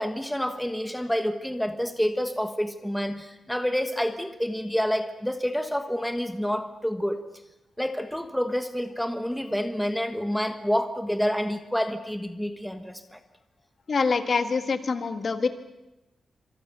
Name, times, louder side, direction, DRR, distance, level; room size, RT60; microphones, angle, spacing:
voice 1, 0.0-7.2 7.8-13.2, equal, 5° left, 7 dB, 1.2 m, -28 dB
voice 2, 13.9-15.5, left 4 dB, 45° left, 9 dB, 1.7 m, -25 dB
27.5 x 26.0 x 6.8 m, 0.97 s
wide cardioid pair, 170°, 0 cm